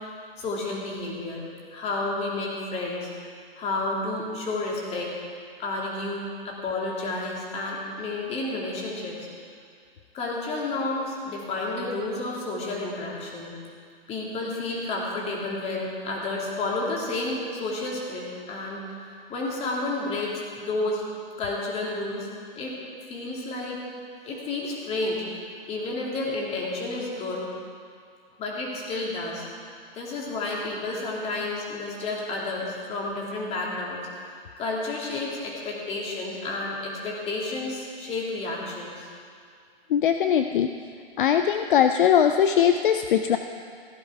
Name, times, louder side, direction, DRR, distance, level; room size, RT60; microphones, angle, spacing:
voice 1, 0.4-1.4 1.7-3.1 3.6-5.1 5.6-9.2 10.1-13.5 14.1-18.8 19.3-21.0 21.4-22.3 22.5-22.8 23.1-23.8 24.2-25.4 25.7-27.4 28.4-29.5 29.9-34.0 34.6-39.1, left 2 dB, 20° left, -3 dB, 2.7 m, -31 dB
voice 2, 39.9-40.7 41.2-43.4, left 9 dB, 60° left, 7 dB, 0.6 m, -20 dB
15.5 x 10.5 x 4.7 m, 2.2 s
hypercardioid pair, 130°, 30 cm